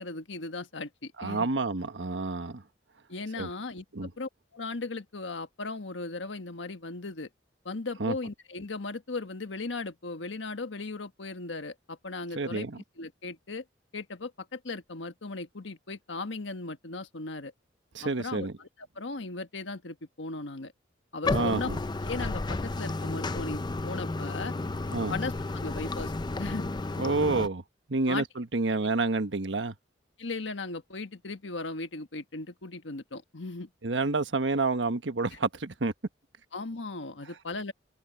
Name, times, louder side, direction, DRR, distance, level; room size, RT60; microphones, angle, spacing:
voice 1, 0.0-1.5 3.1-3.8 4.2-7.3 7.6-12.7 13.0-13.6 13.9-17.5 18.0-18.7 18.9-20.7 21.1-21.7 22.0-24.5 25.1-26.1 26.4-26.7 28.1-28.3 30.2-33.7 36.5-37.7, left 3 dB, 90° left, 1.4 m, -37 dB
voice 2, 1.2-2.6 3.4-3.5 3.9-4.1 8.0-8.1 12.4-12.8 17.9-18.5 21.3-21.8 24.9-25.1 27.0-27.6 27.9-29.7 33.8-35.9, right 3 dB, 80° right, 1.3 m, -29 dB
Bathtub (filling or washing), 21.2-27.5, left 2 dB, 25° left, 0.5 m, -32 dB
open air
head